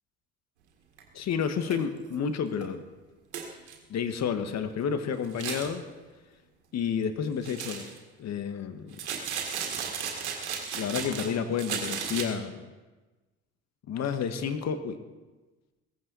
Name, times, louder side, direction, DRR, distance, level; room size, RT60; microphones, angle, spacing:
sound 1, 1.0-1.1 1.6-1.8 2.1-2.2 2.6-2.7 3.3-3.8 5.2-5.7 7.4-8.0 8.9-11.3 11.6-12.2, right 7 dB, 90° right, 1.8 m, -34 dB
voice 1, 1.1-2.8 3.9-5.8 6.7-7.9 8.2-9.0 10.7-12.6 13.9-15.0, left 7 dB, 55° left, 8 dB, 1.6 m, -30 dB
18.0 x 15.0 x 4.1 m, 1.2 s
hypercardioid pair, 60°, 33 cm